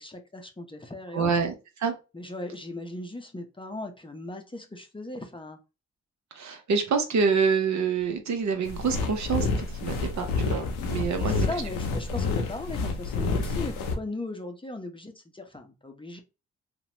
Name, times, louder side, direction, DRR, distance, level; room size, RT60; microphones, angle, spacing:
voice 1, 0.0-1.3 2.1-5.6 11.2-16.2, left 2 dB, 15° left, 4 dB, 0.6 m, -38 dB
voice 2, 1.1-2.0 6.3-11.3, right 5 dB, 55° right, 6 dB, 0.7 m, -27 dB
sound 1, 8.6-13.9, left 3 dB, 90° left, 0.5 m, -29 dB
2.9 x 2.1 x 2.8 m, 0.29 s
hypercardioid pair, 40°, 33 cm